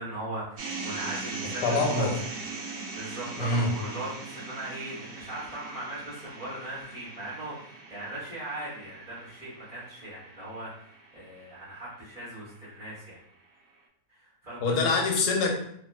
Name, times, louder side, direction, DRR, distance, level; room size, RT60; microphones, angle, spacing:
voice 1, 0.0-2.1 2.6-2.7 2.9-13.2 14.1-14.7, right 1 dB, 35° right, -9 dB, 1.1 m, -39 dB
sound 1, 0.6-12.7, right 3 dB, 70° right, 1.0 m, -41 dB
voice 2, 1.6-2.1 3.4-3.7 14.6-15.5, left 3 dB, 90° left, 2 dB, 1.2 m, -24 dB
3.0 x 2.4 x 2.2 m, 0.69 s
omnidirectional pair, 1.7 m